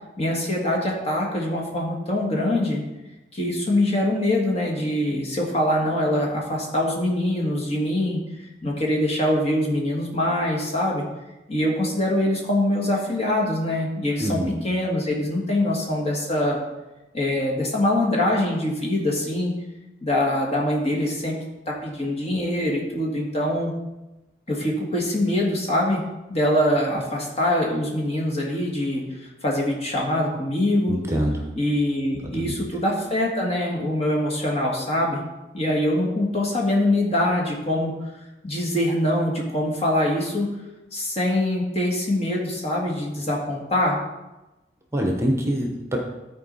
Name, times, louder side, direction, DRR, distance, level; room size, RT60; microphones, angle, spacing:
voice 1, 0.2-2.8 3.3-8.2 8.6-11.0 11.5-14.4 14.6-16.6 17.1-19.5 20.0-21.3 21.7-23.7 24.5-26.0 26.3-31.0 31.5-35.2 35.5-37.9 38.4-40.5 40.9-44.0, left 1 dB, 35° left, -1 dB, 1.8 m, -23 dB
voice 2, 14.2-14.5 30.9-31.5 32.4-32.5 44.9-46.0, right 1 dB, 15° right, 1 dB, 0.9 m, -24 dB
13.5 x 4.6 x 4.1 m, 1.0 s
head